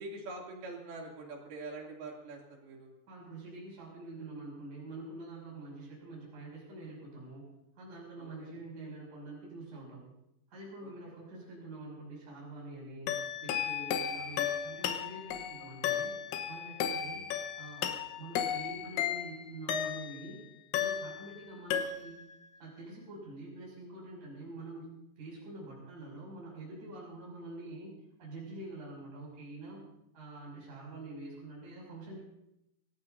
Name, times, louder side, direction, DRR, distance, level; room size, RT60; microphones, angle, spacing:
voice 1, 0.0-3.0 8.2-8.6 10.8-10.9, right 2 dB, 55° right, -1 dB, 4.3 m, -44 dB
voice 2, 3.1-7.4 7.8-10.1 10.5-13.1 13.4-16.1 16.5-17.2 17.6-17.9 18.2-20.4 20.7-22.1 22.6-24.9 25.2-27.9 28.2-29.8 30.1-32.2, right 2 dB, 40° right, -3 dB, 7.4 m, -46 dB
sound 1, 13.1-20.3 20.7-21.4 21.7-22.3, left 9 dB, 90° left, 3.7 m, -34 dB
25.0 x 18.0 x 2.7 m, 0.82 s
omnidirectional pair, 5.5 m